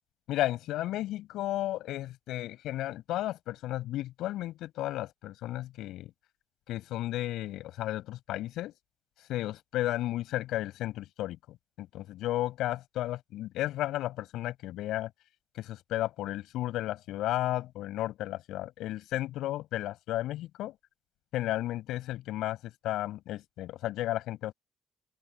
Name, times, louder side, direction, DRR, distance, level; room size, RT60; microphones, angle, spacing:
voice 1, 0.3-6.1 6.7-8.7 9.3-11.4 11.8-15.1 15.5-20.7 21.3-24.5, left 14 dB, 90° left, 7.5 m, -33 dB
open air
cardioid pair, 90°, 0 cm